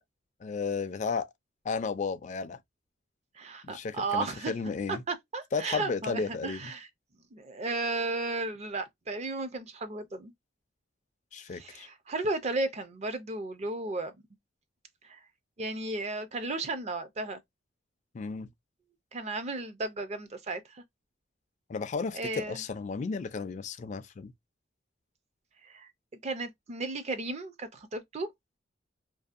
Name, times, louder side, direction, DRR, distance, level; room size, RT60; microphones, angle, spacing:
voice 1, 0.4-1.3 1.6-2.6 3.6-5.0 5.5-6.7 11.3-11.9 18.1-18.5 21.7-24.3, left 4 dB, 40° left, 0.3 m, -33 dB
voice 2, 3.4-4.5 4.9-6.9 7.3-10.3 11.5-14.1 15.0-15.2 15.6-17.4 19.1-20.8 22.1-22.6 25.6-25.9 26.2-28.3, right 3 dB, 35° right, 0.4 m, -34 dB
2.6 x 2.1 x 2.4 m
head